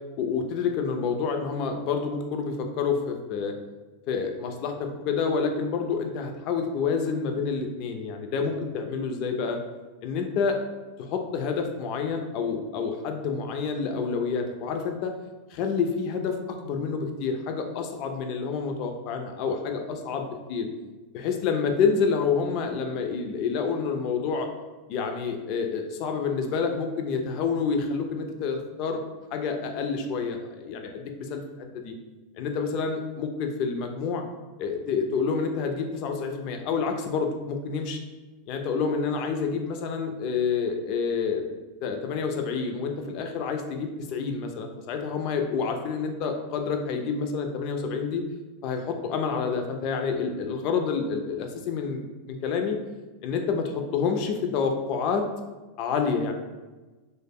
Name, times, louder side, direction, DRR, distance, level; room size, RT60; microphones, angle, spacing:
voice 1, 0.2-3.5 4.1-9.6 10.0-10.6 11.0-15.1 15.5-20.7 21.1-24.5 24.9-29.0 29.3-31.4 31.7-31.9 32.4-34.2 34.6-38.0 38.5-41.4 41.8-48.2 48.6-52.8 53.2-55.2 55.8-56.3, left 5 dB, 50° left, 4 dB, 0.3 m, -28 dB
2.0 x 2.0 x 3.5 m, 1.2 s
supercardioid pair, 135°, 0 cm